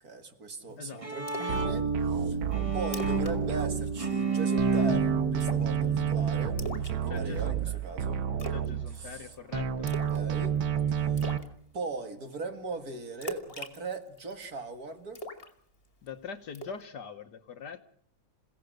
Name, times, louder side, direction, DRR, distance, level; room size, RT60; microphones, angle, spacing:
voice 1, 0.0-2.4 2.7-5.1 5.3-8.2 8.9-9.3 10.1-10.5 11.7-15.2, right 3 dB, 50° right, 8 dB, 2.3 m, -39 dB
Bowed string instrument, 0.7-6.8, right 4 dB, 20° right, 1.3 m, -31 dB
Splash splatter, 1.3-1.6 2.0-2.1 2.5-2.6 2.8-3.3 3.6-3.8 4.1-4.5 5.4-5.8 6.6-7.5 8.4-8.7 8.9-9.3 9.9-10.2 10.6-10.7 11.2-11.5 13.2-14.5 15.1-16.1 16.5-16.8, equal, 30° left, 2.3 m, -40 dB
sound 1, 1.5-4.3 4.6-9.2 9.5-11.4, right 8 dB, 80° right, 1.9 m, -30 dB
voice 2, 7.1-7.8 8.5-9.9 16.0-17.8, left 6 dB, 60° left, 10 dB, 1.6 m, -42 dB
28.0 x 17.0 x 6.5 m, 0.64 s
omnidirectional pair, 2.2 m